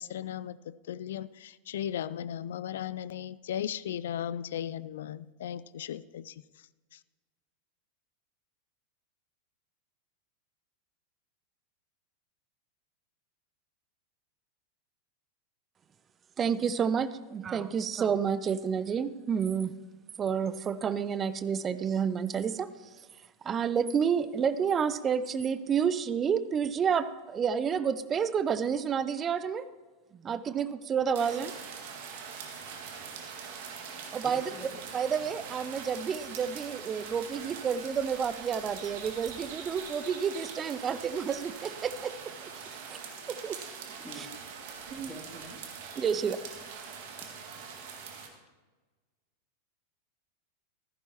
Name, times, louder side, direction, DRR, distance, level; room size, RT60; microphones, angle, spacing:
voice 1, 0.0-6.4 6.9-7.0, left 10 dB, 60° left, 18 dB, 0.3 m, -36 dB
voice 2, 16.4-19.7 20.2-22.7 23.4-29.6 30.1-31.5 34.1-34.5 34.9-42.1 42.9-43.0 43.3-43.6 44.9-45.1 46.0-46.4, right 7 dB, 25° right, 14 dB, 0.6 m, -29 dB
sound 1, 31.1-48.3, right 6 dB, 50° right, 1.9 m, -43 dB
voice 3, 34.2-34.8 44.0-44.3 44.9-45.6, equal, ahead, 1 dB, 2.1 m, -47 dB
14.5 x 14.5 x 2.9 m, 1.3 s
figure-of-eight pair, 90°, 0 cm